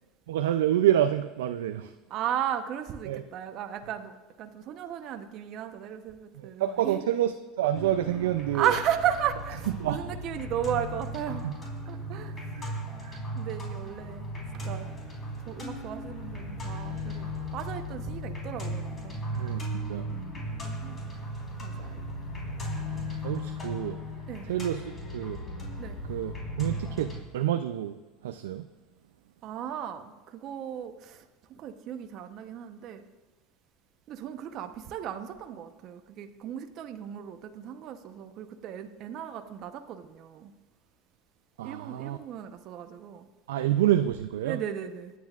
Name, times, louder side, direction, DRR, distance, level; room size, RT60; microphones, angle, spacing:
voice 1, 0.3-1.9 3.0-3.2 6.4-8.7 9.8-10.1 11.4-11.5 13.0-13.2 19.3-19.6 19.9-20.0 23.2-24.0 24.5-24.8 25.1-25.4 26.1-28.0 28.2-28.7 41.6-42.2 43.5-44.6, right 12 dB, 85° right, 8 dB, 0.4 m, -27 dB
voice 2, 2.1-7.0 8.5-12.4 13.3-14.3 14.5-14.9 15.5-19.2 20.1-20.4 20.8-21.0 21.6-22.1 24.3-24.5 25.8-26.0 29.4-33.1 34.1-40.5 41.6-43.3 44.4-45.1, right 9 dB, 50° right, 6 dB, 0.9 m, -35 dB
sound 1, 7.7-27.2, equal, 30° left, 3.9 m, -36 dB
23.5 x 9.4 x 2.5 m, 1.1 s
hypercardioid pair, 95°, 0 cm